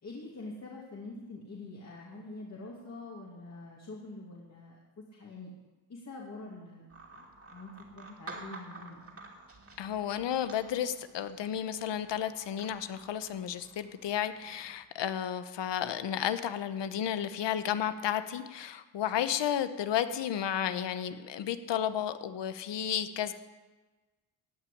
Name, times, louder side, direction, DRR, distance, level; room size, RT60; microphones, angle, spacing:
voice 1, 0.0-5.5 5.9-9.0, left 2 dB, 35° left, -3 dB, 2.5 m, -45 dB
sound 1, 6.9-14.8, right 3 dB, 30° right, 2.8 m, -51 dB
voice 2, 9.8-23.3, left 10 dB, 70° left, 11 dB, 1.0 m, -32 dB
16.0 x 6.0 x 10.0 m, 1.2 s
cardioid pair, 100°, 45 cm